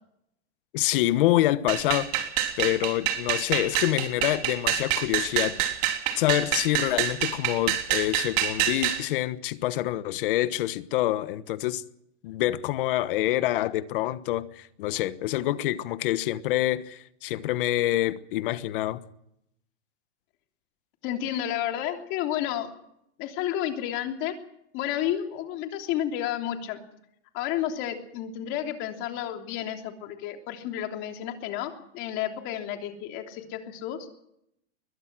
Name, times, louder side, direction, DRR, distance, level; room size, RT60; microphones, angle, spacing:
voice 1, 0.7-2.3 2.6-5.6 6.1-11.8 12.2-19.0, left 15 dB, 50° left, 1.3 m, -26 dB
sound 1, 1.7-9.0, right 11 dB, 40° right, 3.4 m, -27 dB
voice 2, 21.0-22.7 23.2-24.3 24.7-26.8 27.3-34.1, left 11 dB, 35° left, 3.3 m, -31 dB
21.5 x 21.0 x 6.2 m
supercardioid pair, 155°, 35 cm